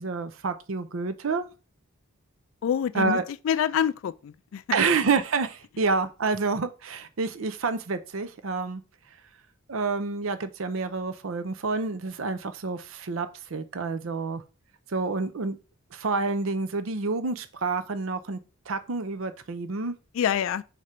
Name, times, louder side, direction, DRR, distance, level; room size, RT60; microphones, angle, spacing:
voice 1, 0.0-1.4 2.9-3.2 4.7-8.8 9.7-14.4 14.9-15.6 15.9-18.4 18.7-19.9, right 4 dB, 70° right, 0.6 m, -28 dB
voice 2, 2.6-3.2 3.4-4.6 20.1-20.6, left 8 dB, 65° left, 0.3 m, -26 dB
5.0 x 4.3 x 5.0 m
head